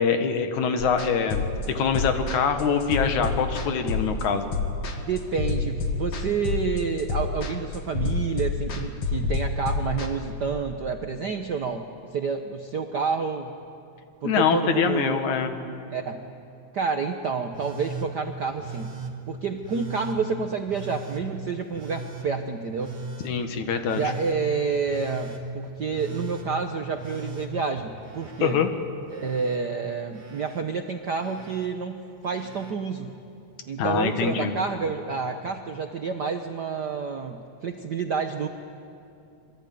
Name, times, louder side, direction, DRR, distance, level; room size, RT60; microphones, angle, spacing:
voice 1, 0.0-1.5 1.7-4.5 14.2-15.5 23.2-24.0 28.4-28.7 33.8-34.5, left 6 dB, 80° left, 7 dB, 3.0 m, -24 dB
sound 1, 0.8-10.1, left 4 dB, 55° left, 2.9 m, -28 dB
voice 2, 5.0-13.5 14.2-15.3 15.9-16.2 16.7-18.9 19.3-23.0 24.0-28.6 29.1-33.2 33.7-38.5, right 5 dB, 75° right, 5 dB, 0.9 m, -29 dB
Telephone, 17.5-18.1 18.6-19.1 19.6-20.2 20.7-21.2 21.7-22.3 22.8-23.3 23.8-24.4 24.9-25.4 25.9-26.5 27.0-28.5 28.8-29.6 30.1-30.6 31.2-31.7 32.2-32.7 33.9-34.0, right 5 dB, 25° right, 2.4 m, -38 dB
26.5 x 23.5 x 9.3 m, 2.6 s
omnidirectional pair, 3.3 m